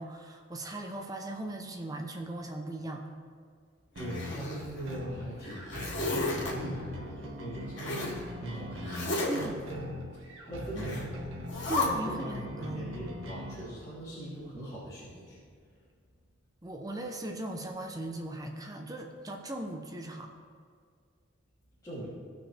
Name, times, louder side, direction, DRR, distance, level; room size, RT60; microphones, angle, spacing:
voice 1, 0.0-3.0 9.3-9.6 11.7-12.9 16.6-20.3, right 1 dB, 20° right, 3 dB, 0.8 m, -38 dB
Zipper (clothing), 4.0-5.0 5.4-6.5 7.8-8.2 8.8-9.5 10.8-11.1 11.5-11.9, left 2 dB, 60° left, 3.0 m, -33 dB
voice 2, 4.0-9.9 10.4-11.3 11.8-15.4 21.8-22.1, right 1 dB, 20° left, -13 dB, 3.0 m, -41 dB
sound 1, 4.0-13.6, left 1 dB, 90° right, 1.5 m, -42 dB
18.0 x 6.2 x 3.4 m, 2.1 s
head